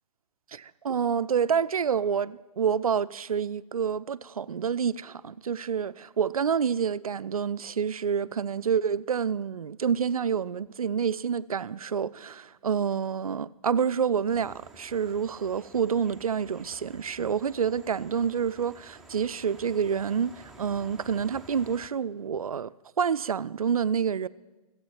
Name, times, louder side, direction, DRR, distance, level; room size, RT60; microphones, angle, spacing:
voice 1, 0.5-24.3, right 7 dB, 70° right, 0.5 m, -28 dB
sound 1, 14.3-21.9, right 2 dB, ahead, 0.7 m, -52 dB
16.0 x 7.9 x 7.4 m
figure-of-eight pair, 125°, 19 cm